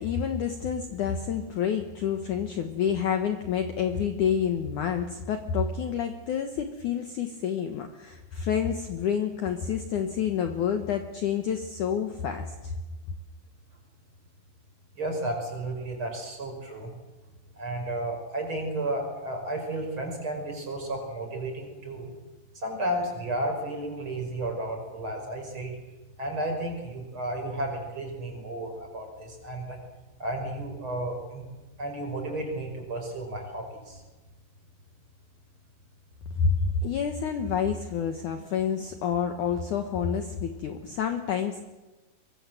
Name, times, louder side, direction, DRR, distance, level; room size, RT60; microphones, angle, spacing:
voice 1, 0.0-12.7 36.3-41.7, left 7 dB, 60° left, 6 dB, 2.3 m, -28 dB
voice 2, 15.0-16.9 17.5-22.1 22.5-25.7 26.2-29.8 30.2-31.5 31.8-34.0, right 1 dB, 30° right, 2 dB, 6.2 m, -33 dB
24.5 x 23.5 x 7.8 m, 1.2 s
omnidirectional pair, 4.8 m